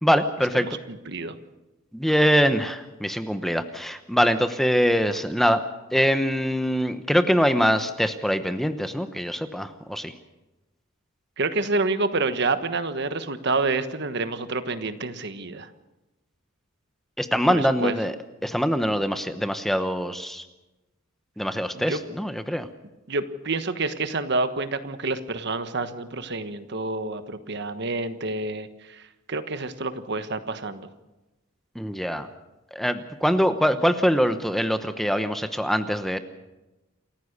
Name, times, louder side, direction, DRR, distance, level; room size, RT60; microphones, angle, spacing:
voice 1, 0.0-0.8 1.9-5.6 5.9-10.1 17.2-18.2 18.4-20.4 21.4-22.7 31.7-32.3 32.7-36.2, equal, ahead, 9 dB, 0.9 m, -23 dB
voice 2, 0.6-1.3 11.4-15.7 17.5-17.9 21.7-22.0 23.1-30.9, right 3 dB, 55° right, 10 dB, 1.3 m, -28 dB
28.5 x 15.0 x 6.7 m, 1.0 s
head